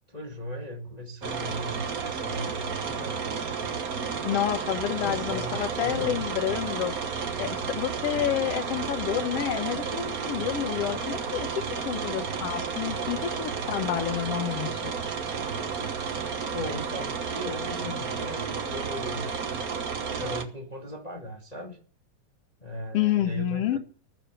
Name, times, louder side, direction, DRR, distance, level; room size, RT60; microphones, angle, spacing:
voice 1, 0.1-3.2 4.9-6.2 16.5-19.3 20.2-21.8 22.6-23.8, left 1 dB, 15° left, 1.4 m, -37 dB
sound 1, 1.2-20.4, right 6 dB, 85° right, 0.7 m, -32 dB
voice 2, 4.2-6.9 7.4-14.9 22.9-23.8, left 11 dB, 60° left, 1.9 m, -29 dB
19.0 x 7.7 x 6.3 m
omnidirectional pair, 3.6 m